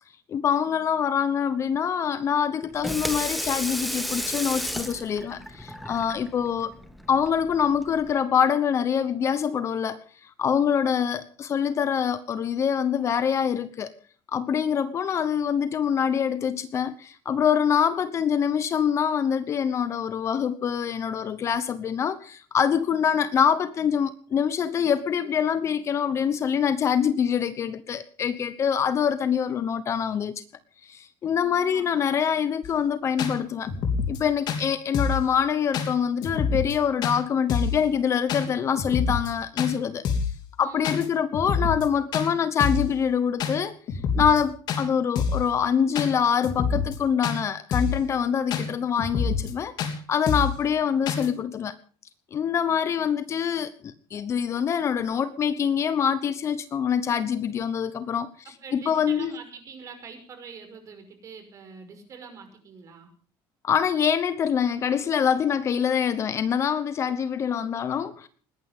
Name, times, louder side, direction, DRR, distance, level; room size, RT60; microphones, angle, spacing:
voice 1, 0.3-6.7 7.1-13.9 14.3-30.4 30.8-33.7 34.1-40.1 40.6-51.8 52.3-58.3 58.7-59.3 63.6-68.3, left 7 dB, 30° left, 13 dB, 1.0 m, -25 dB
Water tap faucet / Sink (filling or washing), 2.6-8.1, equal, ahead, 1.8 m, -33 dB
sound 1, 32.6-32.7 33.2-33.3 33.7-34.2 34.5-34.6 34.9-35.2 35.7-35.9 36.2-36.7 37.0-37.2 37.5-37.8 38.3-38.4 38.8-39.3 39.6-39.7 40.0-40.4 40.8-41.1 41.3-41.9 42.1-42.3 42.6-42.9 43.4-43.5 43.9-44.4 44.7-44.8 45.1-45.5 45.9-46.1 46.4-47.0 47.2-47.4 47.7-48.0 48.5-48.6 49.0-49.5 49.8-49.9 50.3-50.6 51.1-51.3, left 5 dB, 50° left, 3.5 m, -26 dB
voice 2, 40.6-40.9 58.5-63.1, right 5 dB, 35° right, 5 dB, 5.6 m, -44 dB
21.0 x 18.5 x 3.7 m, 0.41 s
cardioid pair, 170°, 9 cm